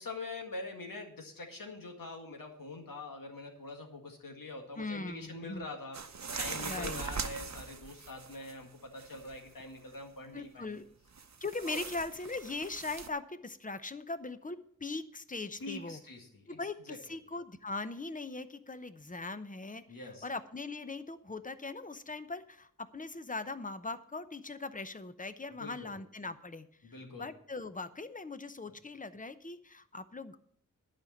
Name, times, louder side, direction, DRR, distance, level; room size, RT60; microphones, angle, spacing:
voice 1, 0.0-6.0 6.4-10.8 11.7-11.8 15.6-16.6 16.9-17.0 19.9-20.3 25.6-26.0 26.8-27.3, left 2 dB, 90° left, 3 dB, 1.9 m, -44 dB
voice 2, 4.8-5.6 6.6-7.1 10.3-10.8 11.4-16.0 16.5-30.4, left 3 dB, 25° left, 12 dB, 0.8 m, -40 dB
sound 1, 5.9-8.6 9.0-9.6 11.1-13.1, right 5 dB, 55° right, 0.8 m, -41 dB
11.5 x 5.1 x 8.6 m, 0.63 s
wide cardioid pair, 75°, 33 cm